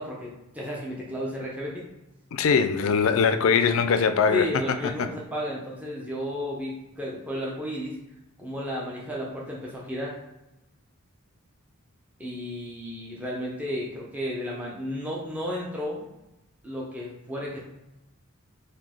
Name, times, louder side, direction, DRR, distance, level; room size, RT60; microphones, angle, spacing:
voice 1, 0.0-1.8 4.3-8.0 8.4-10.2 12.2-16.0 16.6-17.6, left 1 dB, 5° right, -4 dB, 0.6 m, -33 dB
voice 2, 2.3-4.5 4.8-5.1, left 6 dB, 65° left, 10 dB, 0.3 m, -22 dB
3.8 x 2.7 x 3.7 m, 0.93 s
head